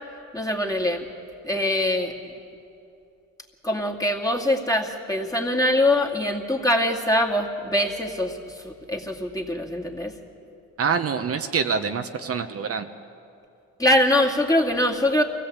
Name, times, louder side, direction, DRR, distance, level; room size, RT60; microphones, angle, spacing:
voice 1, 0.3-1.1 1.4-2.1 3.6-10.1 13.8-15.2, left 1 dB, 10° left, 0 dB, 2.3 m, -23 dB
voice 2, 10.8-12.9, right 6 dB, 50° right, 6 dB, 1.0 m, -26 dB
24.5 x 17.0 x 8.3 m, 2.6 s
cardioid pair, 90°, 30 cm